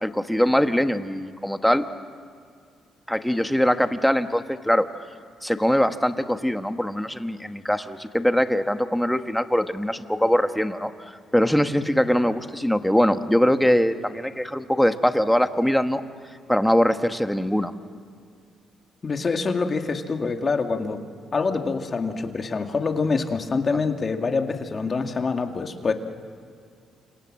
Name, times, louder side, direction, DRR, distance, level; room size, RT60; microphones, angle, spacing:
voice 1, 0.0-1.9 3.1-4.9 5.4-16.0 16.5-17.7, equal, 5° left, 8 dB, 1.3 m, -22 dB
voice 2, 19.0-21.0 21.3-25.9, left 4 dB, 40° left, 5 dB, 2.1 m, -25 dB
29.5 x 26.5 x 7.6 m, 2.2 s
cardioid pair, 90°, 0 cm